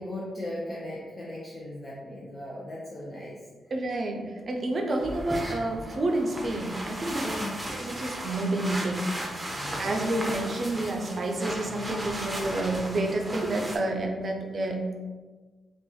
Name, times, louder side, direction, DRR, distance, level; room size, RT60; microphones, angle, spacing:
voice 1, 0.0-3.7 7.1-7.7 9.5-10.1, left 1 dB, 35° left, -6 dB, 0.7 m, -38 dB
voice 2, 3.7-7.4 7.7-15.1, right 2 dB, 55° right, 3 dB, 0.5 m, -29 dB
sound 1, 5.0-13.8, right 1 dB, 20° right, 0.7 m, -36 dB
2.6 x 2.5 x 3.8 m, 1.3 s
cardioid pair, 60°, 0 cm